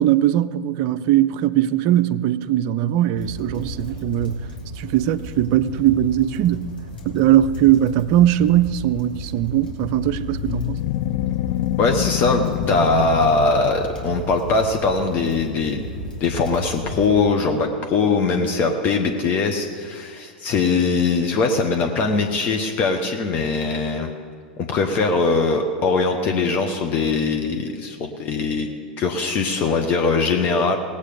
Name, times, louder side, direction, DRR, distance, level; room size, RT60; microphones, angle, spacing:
voice 1, 0.0-4.4 4.8-6.7 7.1-10.8, right 12 dB, 45° right, 0.5 m, -20 dB
sound 1, 3.1-17.1, left 1 dB, 80° left, 3.0 m, -34 dB
sound 2, 10.0-14.4, left 15 dB, 50° left, 0.3 m, -26 dB
voice 2, 11.8-24.1 24.6-28.7 29.0-30.8, left 3 dB, 35° left, 1.1 m, -21 dB
19.0 x 8.2 x 5.1 m
figure-of-eight pair, 90°, 5 cm